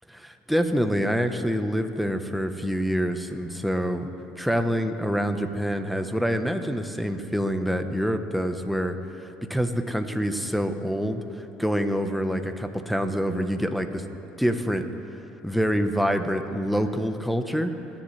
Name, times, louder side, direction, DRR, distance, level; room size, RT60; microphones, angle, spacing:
voice 1, 0.1-4.1 4.4-9.0 9.2-14.0 14.4-14.9 15.4-17.7, equal, ahead, 6 dB, 1.0 m, -26 dB
26.0 x 10.5 x 3.3 m, 2.9 s
supercardioid pair, 95°, 3 cm